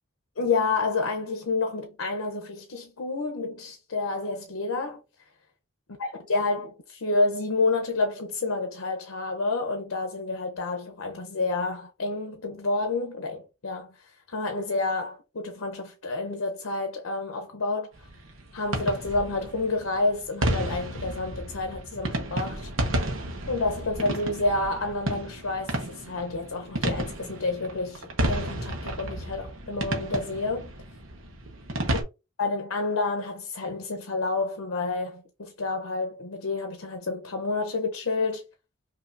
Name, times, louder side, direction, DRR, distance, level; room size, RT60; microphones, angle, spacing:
voice 1, 0.4-5.0 6.0-17.9 18.5-22.7 23.5-30.7 32.4-38.4, left 3 dB, 80° left, 0.7 m, -29 dB
sound 1, 18.0-32.0, right 1 dB, 70° right, 1.0 m, -32 dB
5.5 x 2.8 x 2.6 m
head